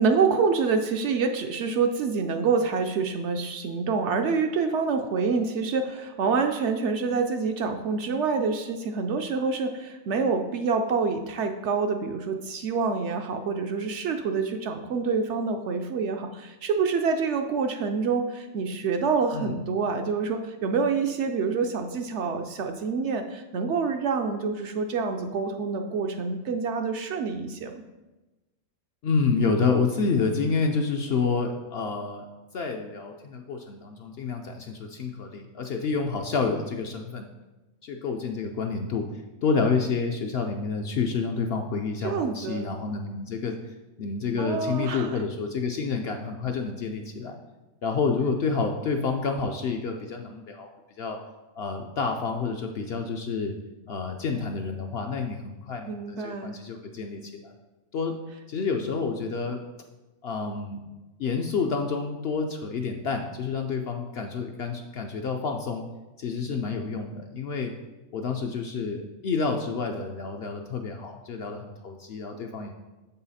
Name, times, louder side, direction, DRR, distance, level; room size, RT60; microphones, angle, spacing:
voice 1, 0.0-27.8 42.0-42.7 44.4-45.2 55.9-56.5, right 5 dB, 65° right, 6 dB, 0.7 m, -27 dB
voice 2, 29.0-32.3 32.5-37.3 37.8-39.0 39.4-43.6 44.0-47.4 47.8-50.7 51.0-51.2 51.6-53.5 53.9-57.5 57.9-58.1 58.5-59.6 60.2-60.8 61.2-65.8 66.2-67.7 68.1-72.7, left 4 dB, 60° left, 3 dB, 0.6 m, -29 dB
7.3 x 5.6 x 4.1 m, 1.1 s
omnidirectional pair, 1.5 m